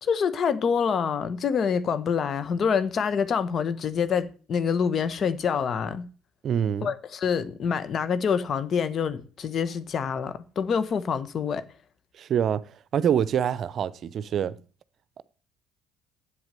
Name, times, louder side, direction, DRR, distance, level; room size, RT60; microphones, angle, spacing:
voice 1, 0.0-6.1 6.8-11.6, left 6 dB, 50° left, 1.2 m, -26 dB
voice 2, 6.4-6.9 12.2-14.6 15.2-15.3, right 8 dB, 50° right, 0.6 m, -26 dB
8.2 x 7.9 x 6.9 m
hypercardioid pair, 65°, 0 cm